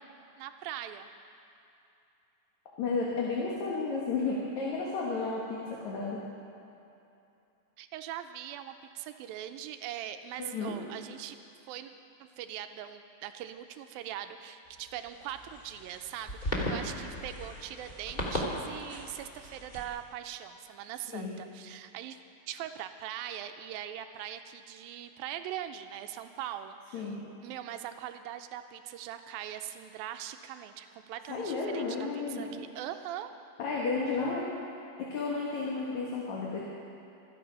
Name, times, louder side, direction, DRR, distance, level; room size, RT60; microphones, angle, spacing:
voice 1, 0.4-1.1 7.8-11.4 11.7-11.9 12.2-22.2 22.5-27.1 27.4-31.9 32.1-33.3, right 11 dB, 85° right, 8 dB, 2.4 m, -41 dB
voice 2, 2.8-6.2 10.4-10.7 21.1-21.3 26.9-27.2 31.3-32.5 33.6-34.5 35.0-36.6, left 4 dB, 55° left, -4 dB, 2.8 m, -32 dB
sound 1, 14.7-19.9, left 1 dB, 20° left, 1.2 m, -37 dB
25.5 x 9.3 x 5.5 m, 2.8 s
omnidirectional pair, 4.2 m